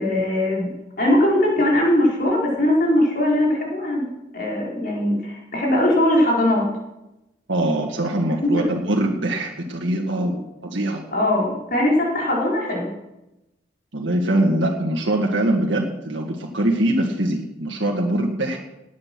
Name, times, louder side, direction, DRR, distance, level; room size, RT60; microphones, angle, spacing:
voice 1, 0.0-6.7 8.4-8.7 10.2-10.3 11.1-12.9, left 1 dB, 50° left, -3 dB, 4.6 m, -20 dB
voice 2, 7.5-10.4 10.6-11.0 13.9-18.6, right 1 dB, 75° right, -1 dB, 2.0 m, -22 dB
19.0 x 9.7 x 6.2 m, 0.94 s
head